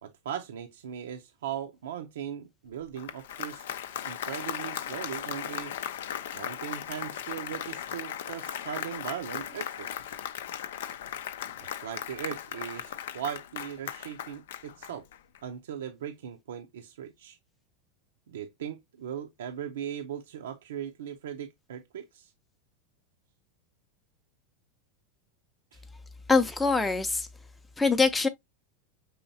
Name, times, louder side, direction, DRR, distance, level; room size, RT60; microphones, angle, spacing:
voice 1, 0.0-3.6 4.1-5.7 6.3-9.9 11.6-15.1 15.4-17.4 18.3-22.3 25.7-25.8, right 9 dB, 85° right, 0.6 m, -39 dB
Applause, 2.8-15.4, left 10 dB, 80° left, 0.5 m, -37 dB
voice 2, 26.3-27.3 27.8-28.3, left 4 dB, 10° left, 0.5 m, -23 dB
5.6 x 3.1 x 2.7 m
hypercardioid pair, 110°, 0 cm